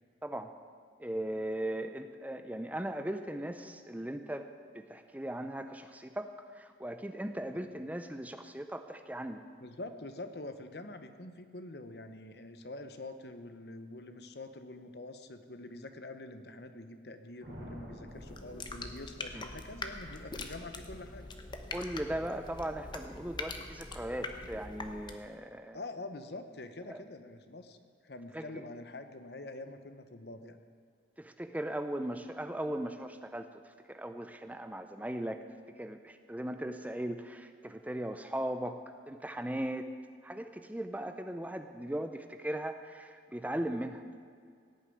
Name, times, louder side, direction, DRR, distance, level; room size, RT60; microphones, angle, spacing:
voice 1, 0.2-0.5 1.0-4.5 4.7-9.4 19.3-19.4 21.7-25.8 26.9-27.0 28.3-28.6 31.2-35.4 35.8-38.8 39.1-39.9 40.2-44.0, right 1 dB, 10° right, 8 dB, 0.5 m, -38 dB
voice 2, 9.6-21.3 25.7-27.8 28.0-30.6, left 2 dB, 65° left, 9 dB, 1.0 m, -45 dB
sound 1, 17.4-19.7, equal, 80° right, 4.7 m, -49 dB
sound 2, 18.1-25.4, left 3 dB, 25° left, 0.9 m, -43 dB
17.0 x 6.9 x 9.2 m, 2.2 s
head